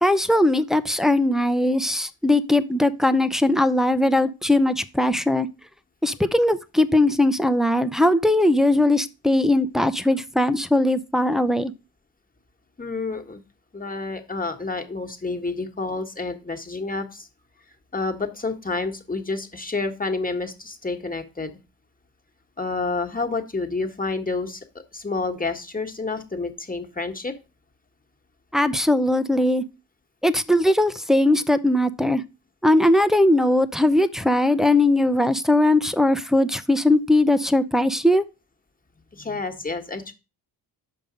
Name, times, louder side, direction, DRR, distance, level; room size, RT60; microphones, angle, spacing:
voice 1, 0.0-5.5 6.0-11.7 28.5-29.6 30.2-32.2 32.6-38.2, left 1 dB, ahead, 0.6 m, -20 dB
voice 2, 12.8-13.4 13.7-17.3 17.9-21.6 22.6-24.6 24.9-27.3 39.1-40.1, left 3 dB, 20° left, 1.6 m, -29 dB
6.4 x 5.5 x 5.2 m
cardioid pair, 60°, 41 cm